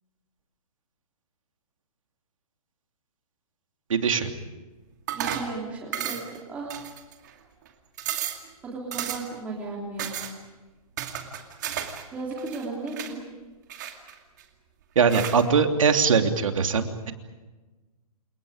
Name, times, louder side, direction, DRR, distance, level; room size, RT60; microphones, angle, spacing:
voice 1, 3.9-4.3 14.9-17.1, right 6 dB, 60° right, 5 dB, 3.1 m, -21 dB
voice 2, 5.1-6.2 6.5-6.7 8.6-10.2 12.1-13.2, right 3 dB, 5° right, -3 dB, 3.3 m, -35 dB
sound 1, 5.1-5.5 5.9-6.4 6.7-7.3 7.7-7.8 8.0-8.5 8.9-9.4 10.0-10.3 11.0-12.0 12.3-13.1 13.7-14.4 15.1-15.4, right 10 dB, 30° right, 2.4 m, -33 dB
29.5 x 28.5 x 5.1 m, 1.2 s
hypercardioid pair, 180°, 19 cm